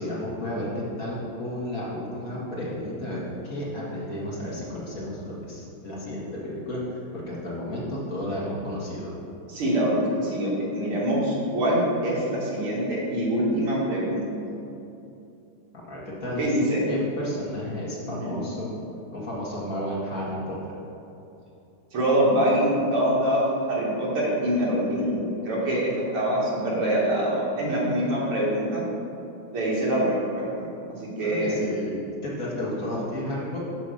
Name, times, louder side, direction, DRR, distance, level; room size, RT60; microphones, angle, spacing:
voice 1, 0.0-9.1 15.7-16.6 16.9-18.7 19.1-20.7 31.2-33.6, left 1 dB, 45° left, -6 dB, 1.9 m, -32 dB
voice 2, 9.5-14.3 16.4-16.8 18.1-18.4 21.9-23.4 23.7-28.8 29.5-30.7 31.0-31.6, right 1 dB, 90° right, -5 dB, 2.8 m, -24 dB
6.9 x 5.6 x 6.3 m, 2.8 s
omnidirectional pair, 2.4 m